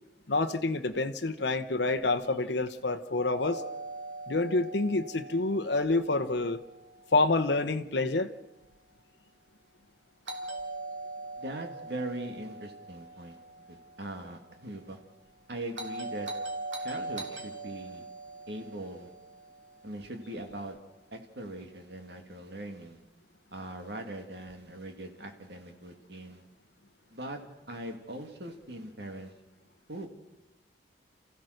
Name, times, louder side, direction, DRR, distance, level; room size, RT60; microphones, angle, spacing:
voice 1, 0.3-3.6 4.3-6.6 7.1-8.3, left 3 dB, 65° left, 8 dB, 0.9 m, -28 dB
Doorbell, 3.4-7.4 10.3-14.5 15.7-20.2, right 2 dB, 80° right, 2.9 m, -41 dB
voice 2, 11.4-13.4 13.7-15.0 15.5-16.3 16.8-18.1 18.5-19.1 19.8-20.8 21.1-23.0 23.5-26.5 27.1-27.4 27.7-29.3 29.9-30.1, right 1 dB, 60° right, 4 dB, 2.3 m, -41 dB
28.5 x 15.0 x 6.5 m, 1.0 s
head